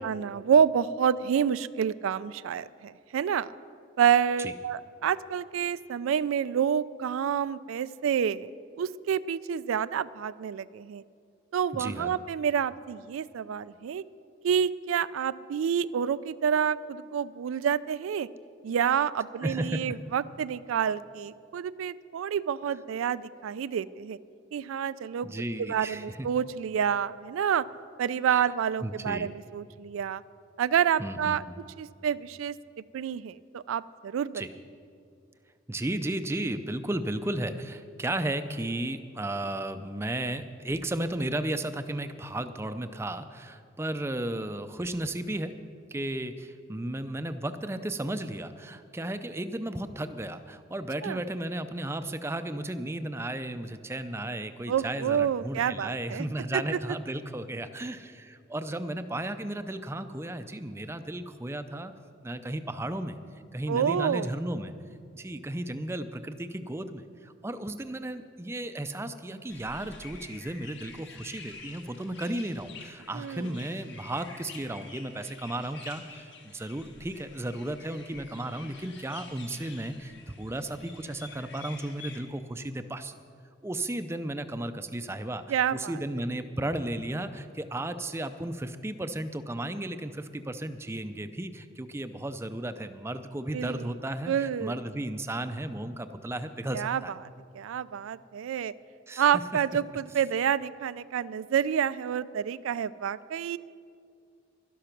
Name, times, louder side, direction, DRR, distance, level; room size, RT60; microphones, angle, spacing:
voice 1, 0.0-3.5 4.0-8.5 8.8-11.0 11.5-14.0 14.4-18.3 18.6-24.2 24.5-25.3 25.6-27.6 28.0-30.2 30.6-31.4 31.8-32.6 32.9-34.4 51.0-51.2 54.7-56.3 56.5-56.8 63.7-64.3 73.1-73.5 85.5-85.9 93.5-93.9 94.3-94.8 96.7-97.0 97.5-98.7 99.2-103.6, right 8 dB, 85° right, 16 dB, 0.3 m, -28 dB
voice 2, 11.7-12.2 19.4-20.0 25.2-26.3 28.3-28.5 28.8-29.3 31.0-31.6 34.3-34.5 35.7-45.5 45.9-61.9 62.2-63.2 63.5-64.7 65.1-83.1 83.6-97.1 99.1-99.4, right 1 dB, 15° right, 10 dB, 0.4 m, -34 dB
sound 1, 69.5-82.2, left 4 dB, 60° left, 1.5 m, -48 dB
12.0 x 11.5 x 5.9 m, 2.4 s
head